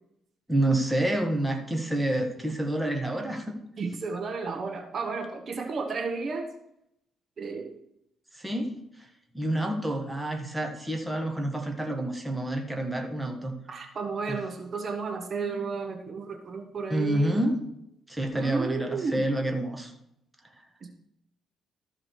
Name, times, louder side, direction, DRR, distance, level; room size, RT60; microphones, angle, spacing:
voice 1, 0.5-3.6 8.3-8.7 9.3-13.5 14.3-14.4 16.9-17.6 18.1-19.9, right 1 dB, 5° right, 3 dB, 1.5 m, -28 dB
voice 2, 3.8-6.5 7.4-7.8 13.7-17.4 18.3-19.2 20.8-20.9, right 4 dB, 50° right, 5 dB, 1.2 m, -32 dB
13.5 x 4.9 x 4.6 m, 0.79 s
cardioid pair, 90°, 0 cm